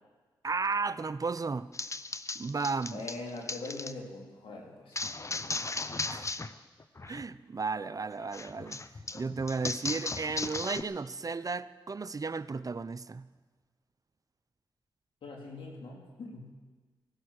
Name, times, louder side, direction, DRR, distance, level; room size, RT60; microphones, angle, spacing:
voice 1, 0.4-1.7 2.4-3.0 6.1-6.3 7.1-8.8 9.1-13.3, right 4 dB, 40° right, 0.6 m, -34 dB
sound 1, 1.7-3.9 5.0-6.5 6.8-7.2 8.3-10.8, left 3 dB, 35° left, 0.7 m, -36 dB
voice 2, 2.9-5.0 15.2-16.5, left 3 dB, 80° left, 3.1 m, -42 dB
16.5 x 12.0 x 6.5 m
supercardioid pair, 40°, 9 cm